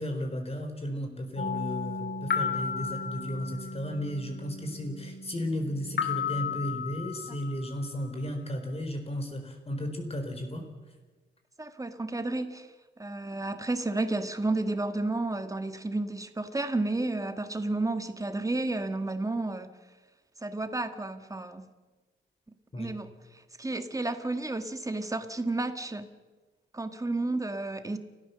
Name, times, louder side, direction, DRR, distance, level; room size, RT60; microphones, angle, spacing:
voice 1, 0.0-10.6 22.7-22.9, equal, 30° left, 5 dB, 4.1 m, -34 dB
sound 1, 1.4-7.9, left 5 dB, 60° left, 2.5 m, -34 dB
voice 2, 11.6-12.7 13.0-19.7 20.4-21.7 22.8-23.1 23.3-26.1 26.7-28.0, right 2 dB, 15° right, 8 dB, 1.6 m, -31 dB
29.5 x 14.0 x 6.9 m, 1.3 s
wide cardioid pair, 120°, 21 cm